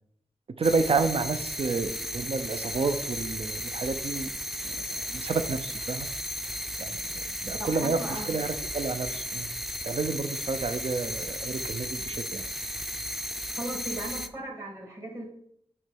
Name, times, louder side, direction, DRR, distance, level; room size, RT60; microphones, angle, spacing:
sound 1, 0.6-14.3, equal, ahead, 0.5 m, -35 dB
voice 1, 0.6-4.3 4.6-6.1 6.8-7.0 7.4-9.5 9.8-12.5, right 4 dB, 65° right, 10 dB, 0.6 m, -30 dB
voice 2, 7.6-8.3 13.5-15.2, right 1 dB, 25° right, 0 dB, 2.2 m, -37 dB
8.5 x 3.2 x 5.3 m, 0.69 s
wide cardioid pair, 70°, 11 cm